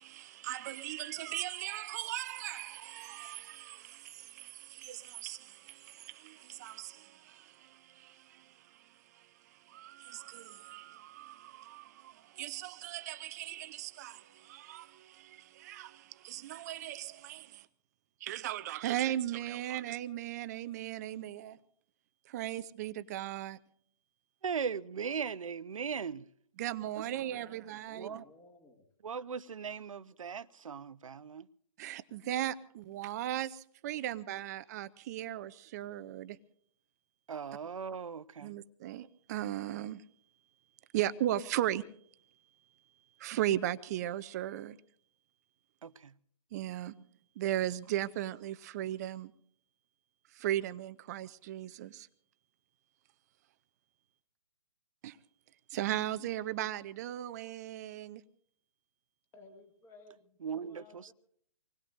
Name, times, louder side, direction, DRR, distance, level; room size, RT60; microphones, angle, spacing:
voice 1, 0.0-17.7 18.2-21.6 22.3-23.6 26.6-28.1 31.8-36.4 38.4-40.0 40.9-41.9 43.2-44.8 46.5-46.9 47.4-49.3 50.3-52.1 55.0-55.2 55.7-58.2, right 13 dB, 30° right, 0.6 m, -37 dB
voice 2, 24.4-26.3 28.0-28.2 29.0-31.5 37.3-38.6 45.8-46.1 46.9-47.0 60.4-61.1, right 6 dB, 65° right, 0.8 m, -38 dB
voice 3, 27.0-28.9 59.3-61.1, left 2 dB, 15° left, 2.1 m, -58 dB
25.5 x 20.0 x 2.6 m
figure-of-eight pair, 140°, 18 cm